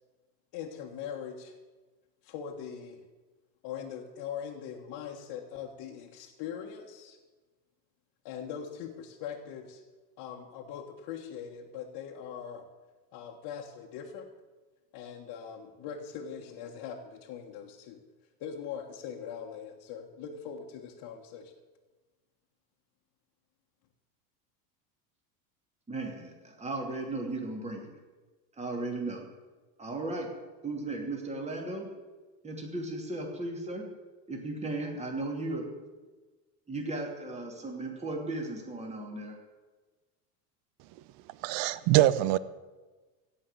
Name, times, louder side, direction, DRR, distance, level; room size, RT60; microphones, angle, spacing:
voice 1, 0.5-1.6 2.2-3.0 3.6-7.2 8.2-9.8 10.2-12.6 13.1-14.3 14.9-18.0 18.4-21.5, left 8 dB, 50° left, -2 dB, 1.6 m, -41 dB
voice 2, 25.9-27.9 28.6-29.2 29.8-30.3 30.6-31.9 32.4-33.8 34.3-35.6 36.7-39.3, right 2 dB, 15° right, 0 dB, 2.8 m, -36 dB
voice 3, 41.4-42.4, right 15 dB, 55° right, 17 dB, 0.8 m, -23 dB
16.0 x 5.7 x 8.2 m, 1.3 s
supercardioid pair, 110°, 50 cm